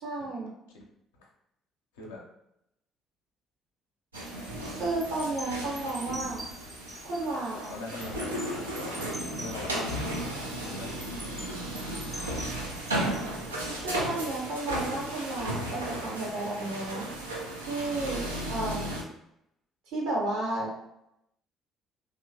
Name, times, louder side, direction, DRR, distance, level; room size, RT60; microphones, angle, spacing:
voice 1, 0.0-0.5 4.7-6.4 7.0-7.6 13.8-17.0 17.7-19.0 19.9-20.7, right 2 dB, 70° right, -3 dB, 1.0 m, -32 dB
voice 2, 1.9-2.2 7.7-9.0 9.4-10.2 10.6-10.9 11.2-11.3, left 3 dB, 75° left, -1 dB, 0.5 m, -42 dB
sound 1, 4.1-14.7 15.1-15.4, right 1 dB, 10° right, 0.3 m, -46 dB
sound 2, 4.1-19.0, right 1 dB, 90° right, 0.3 m, -35 dB
2.8 x 2.0 x 2.7 m, 0.80 s
figure-of-eight pair, 50°, 0 cm